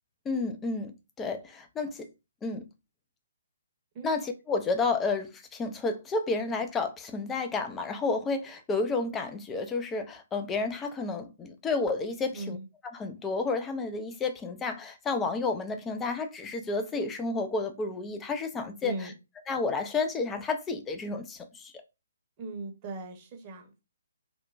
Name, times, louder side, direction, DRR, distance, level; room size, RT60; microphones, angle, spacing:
voice 1, 0.3-2.1 2.4-2.7 4.0-12.6 12.9-19.1 19.5-21.7, left 3 dB, 10° left, 0.4 m, -31 dB
voice 2, 12.3-12.6 18.8-19.1 22.4-23.8, right 3 dB, 25° right, 0.8 m, -38 dB
3.0 x 2.1 x 2.4 m
figure-of-eight pair, 135°, 0 cm